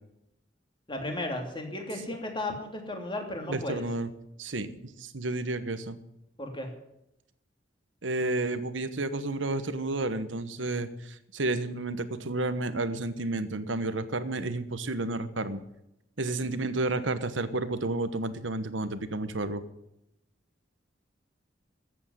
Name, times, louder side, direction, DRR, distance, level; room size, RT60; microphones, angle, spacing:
voice 1, 0.9-3.8 6.4-6.7, left 1 dB, 25° left, 3 dB, 2.9 m, -34 dB
voice 2, 3.5-4.1 4.4-6.0 8.0-15.6 16.2-19.6, right 2 dB, 75° right, 12 dB, 1.2 m, -31 dB
14.0 x 8.4 x 9.8 m, 0.84 s
head